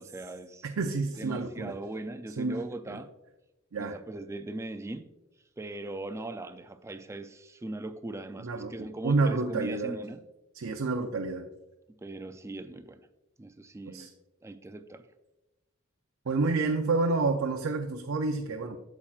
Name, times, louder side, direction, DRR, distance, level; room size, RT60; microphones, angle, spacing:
voice 1, 0.0-0.7 1.2-3.1 3.8-5.1 5.6-10.2 12.0-13.0 13.4-14.1 14.4-15.1, right 2 dB, 15° right, 0.4 m, -39 dB
voice 2, 0.6-1.8 2.4-3.0 3.7-4.0 8.4-10.0 10.5-11.5 13.8-14.1 16.3-18.8, right 3 dB, 70° right, 0.5 m, -29 dB
8.6 x 7.1 x 2.4 m
head